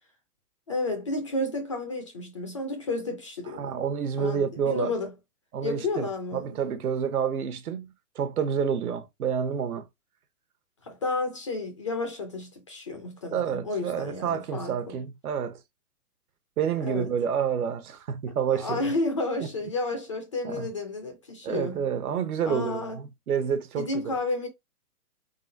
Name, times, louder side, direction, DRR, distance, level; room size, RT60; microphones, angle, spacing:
voice 1, 0.7-3.8 4.2-5.1 5.6-6.6 10.8-15.0 16.8-17.1 18.5-21.8 22.5-23.0 23.8-24.5, left 2 dB, 20° left, 0.5 m, -31 dB
voice 2, 3.6-4.9 5.5-7.9 8.1-9.9 13.3-15.6 16.6-18.9 20.4-20.7 21.4-24.2, right 7 dB, 70° right, 0.9 m, -29 dB
3.9 x 3.6 x 2.6 m
hypercardioid pair, 145°, 45 cm